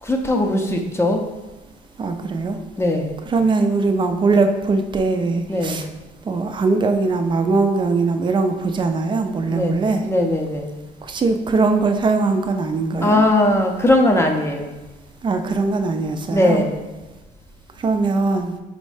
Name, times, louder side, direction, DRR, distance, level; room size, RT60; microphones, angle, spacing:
voice 1, 0.0-1.2 2.8-3.2 5.5-5.8 9.5-10.8 13.0-14.7 16.3-16.8, left 1 dB, 15° left, 3 dB, 0.6 m, -19 dB
voice 2, 2.0-2.6 3.3-5.9 6.3-10.1 11.1-13.2 15.2-16.6 17.8-18.5, right 3 dB, 30° right, 6 dB, 0.5 m, -20 dB
5.1 x 2.1 x 4.8 m, 1.1 s
cardioid pair, 110°, 17 cm